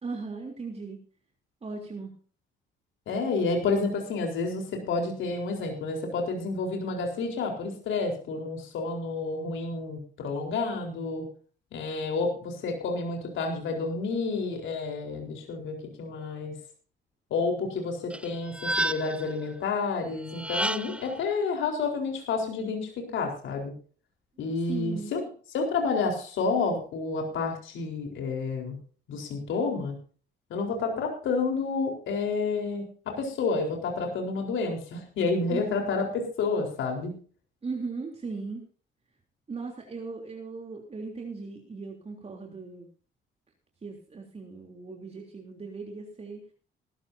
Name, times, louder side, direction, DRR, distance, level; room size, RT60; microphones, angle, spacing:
voice 1, 0.0-1.0 1.6-2.2 24.6-25.1 35.5-35.8 37.6-38.6 39.5-42.9 43.8-46.4, right 4 dB, 30° right, 1 dB, 3.4 m, -38 dB
voice 2, 3.1-11.2 11.7-16.5 17.3-23.7 24.4-25.2 25.5-28.8 29.1-29.9 30.5-36.1 36.4-37.1, left 4 dB, 75° left, 2 dB, 4.3 m, -30 dB
sound 1, 18.1-19.3 20.3-21.1, right 1 dB, 5° right, 0.8 m, -30 dB
18.5 x 14.5 x 2.8 m, 0.42 s
cardioid pair, 90°, 20 cm